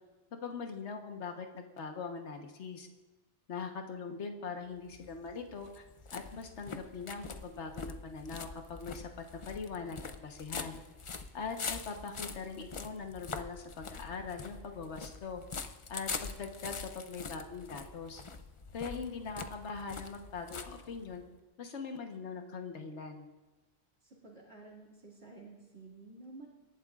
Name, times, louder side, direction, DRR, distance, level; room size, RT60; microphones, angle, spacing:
voice 1, 0.3-2.9 3.5-5.8 6.1-9.1 9.5-10.8 11.3-15.4 15.9-18.2 18.7-21.2 21.6-23.3, left 5 dB, 70° left, 4 dB, 1.5 m, -41 dB
sound 1, 4.8-21.3, left 4 dB, 40° left, 0.5 m, -44 dB
voice 2, 24.0-26.5, right 3 dB, 60° right, -2 dB, 2.7 m, -52 dB
27.0 x 11.5 x 2.4 m, 1.2 s
omnidirectional pair, 1.2 m